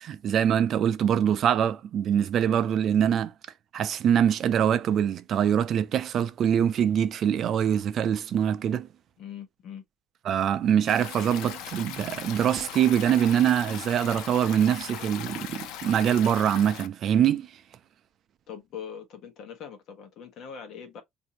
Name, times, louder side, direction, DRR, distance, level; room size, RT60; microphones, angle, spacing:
voice 1, 0.0-3.3 3.7-8.9 10.3-17.5, right 9 dB, 45° right, 0.4 m, -24 dB
voice 2, 9.2-9.8 18.5-21.0, left 8 dB, 55° left, 1.1 m, -42 dB
Stream, 10.9-16.9, left 9 dB, 75° left, 0.6 m, -39 dB
4.3 x 2.7 x 2.9 m
cardioid pair, 155°, 0 cm